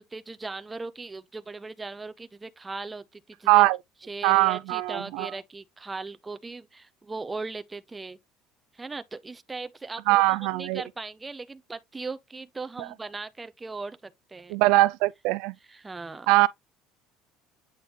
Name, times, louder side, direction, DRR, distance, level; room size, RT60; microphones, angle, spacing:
voice 1, 0.0-3.7 4.1-8.2 8.7-14.6 15.6-16.3, right 3 dB, 10° right, 0.6 m, -38 dB
voice 2, 3.5-3.8 4.2-5.3 10.1-10.8 14.5-15.5 16.3-16.5, right 19 dB, 70° right, 0.3 m, -21 dB
8.7 x 3.7 x 3.2 m
cardioid pair, 170°, 0 cm